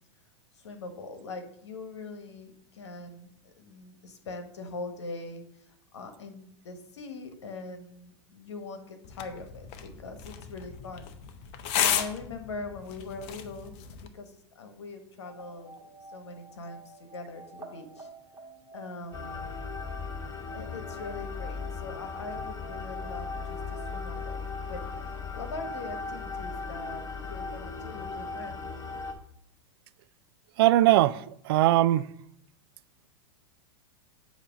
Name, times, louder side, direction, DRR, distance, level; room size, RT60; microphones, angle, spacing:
voice 1, 0.5-11.1 11.8-15.7 16.1-18.1 18.7-19.5 20.5-28.6, left 3 dB, 80° left, 1.3 m, -42 dB
sound 1, 9.0-14.1, left 9 dB, 45° left, 0.7 m, -34 dB
sound 2, 15.2-24.4, right 3 dB, 15° right, 1.7 m, -50 dB
sound 3, 19.1-29.1, left 4 dB, 20° left, 1.1 m, -37 dB
voice 2, 30.6-32.1, right 15 dB, 60° right, 0.4 m, -21 dB
8.5 x 3.0 x 5.9 m
hypercardioid pair, 105°, 14 cm